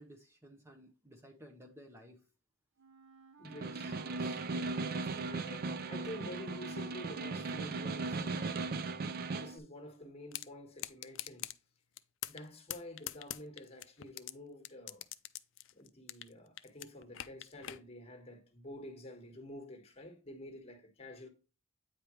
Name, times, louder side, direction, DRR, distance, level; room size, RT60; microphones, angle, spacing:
voice 1, 0.0-2.2, equal, 15° right, 0.9 m, -55 dB
Wind instrument woodwind instrument, 2.8-8.6, right 4 dB, 65° right, 0.9 m, -59 dB
voice 2, 3.4-11.5 12.3-15.1 15.7-21.3, left 1 dB, 30° left, 1.5 m, -49 dB
Snare drum, 3.4-9.6, right 3 dB, 50° right, 0.5 m, -37 dB
sound 1, 10.3-10.5 10.8-11.6 12.0-12.4 12.7-14.3 14.6-16.3 16.6-17.8, left 14 dB, 65° left, 0.4 m, -42 dB
8.9 x 4.9 x 3.1 m
head